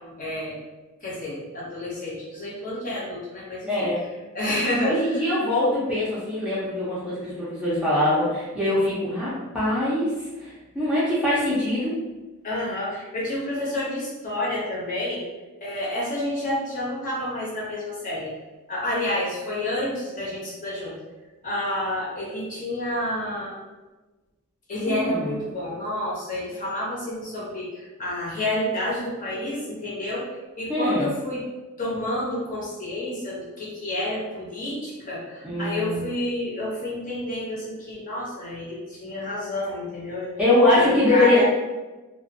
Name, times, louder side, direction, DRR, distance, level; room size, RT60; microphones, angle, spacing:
voice 1, 0.2-0.5 1.0-3.9 4.3-4.9 12.4-15.2 15.6-18.3 18.7-20.9 21.4-23.6 24.7-30.2 30.6-31.4 31.8-40.3 40.7-41.4, left 1 dB, 35° left, -6 dB, 0.8 m, -29 dB
voice 2, 3.7-4.0 4.8-12.0 24.9-25.4 30.7-31.1 35.4-36.0 40.4-41.4, left 1 dB, 5° right, -9 dB, 0.6 m, -23 dB
2.5 x 2.4 x 2.5 m, 1.2 s
head